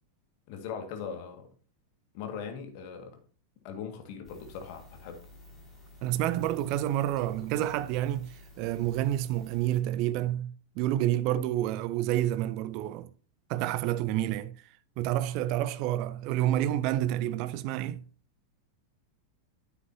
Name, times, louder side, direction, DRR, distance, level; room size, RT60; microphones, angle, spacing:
voice 1, 0.5-1.5 2.1-3.2 3.6-5.2, left 6 dB, 45° left, 1.9 m, -40 dB
sound 1, 4.2-9.8, left 2 dB, ahead, 4.2 m, -52 dB
voice 2, 6.0-13.1 13.5-14.5 15.0-18.0, right 13 dB, 45° right, 0.6 m, -29 dB
9.5 x 8.1 x 2.8 m
figure-of-eight pair, 90°, 0 cm